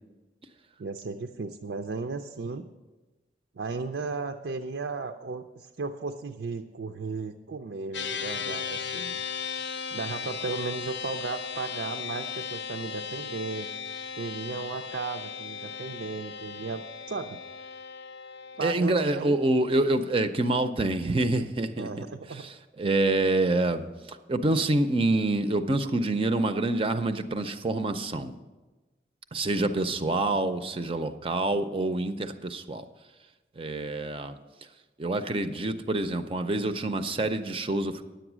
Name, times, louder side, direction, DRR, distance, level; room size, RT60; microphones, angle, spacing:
voice 1, 0.8-2.7 3.5-9.2 9.9-13.7 14.2-17.4 18.6-19.4 21.8-22.4, right 4 dB, 80° right, 6 dB, 0.5 m, -35 dB
sound 1, 7.9-18.8, left 6 dB, 85° left, 0.7 m, -36 dB
voice 2, 18.6-21.9 22.4-22.5 22.8-28.3 29.3-32.8 33.6-34.4 35.0-38.0, right 2 dB, 30° right, 9 dB, 0.5 m, -26 dB
10.5 x 8.0 x 6.1 m, 1.2 s
head